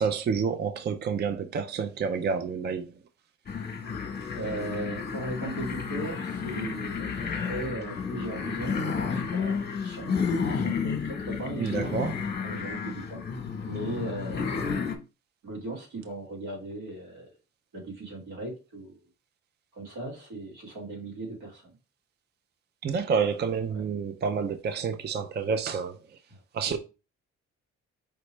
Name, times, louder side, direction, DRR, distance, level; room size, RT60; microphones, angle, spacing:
voice 1, 0.0-2.9 11.6-12.1 22.8-25.9 26.5-26.8, right 6 dB, 35° right, 0.5 m, -28 dB
sound 1, 3.5-15.0, left 5 dB, 35° left, 1.0 m, -31 dB
voice 2, 4.3-12.0 12.4-13.2 13.6-14.8 15.4-17.4 17.7-19.0 19.7-21.8 23.7-23.8 26.3-26.8, right 2 dB, 85° right, 2.2 m, -38 dB
5.1 x 3.1 x 3.2 m
cardioid pair, 90°, 30 cm